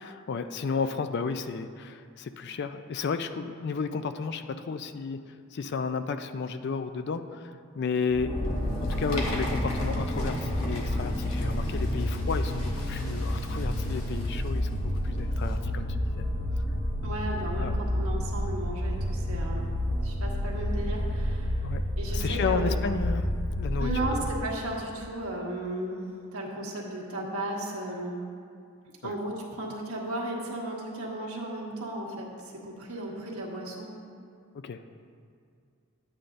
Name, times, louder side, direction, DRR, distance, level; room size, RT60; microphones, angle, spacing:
voice 1, 0.0-5.2 5.5-7.5 7.8-8.3 8.8-15.9 16.1-16.3 17.6-17.8 21.6-21.8 22.1-24.3 29.0-29.1 34.5-34.8, left 5 dB, 50° left, 9 dB, 0.4 m, -33 dB
sound 1, 8.1-24.4, left 1 dB, 15° left, 0.9 m, -29 dB
sound 2, 8.4-15.6, left 1 dB, 80° left, 1.4 m, -42 dB
voice 2, 17.0-19.6 20.0-21.6 22.0-22.7 23.8-26.0 26.3-28.2 29.0-33.9, right 1 dB, 85° right, -2 dB, 1.4 m, -35 dB
11.0 x 8.7 x 2.6 m, 2.3 s
head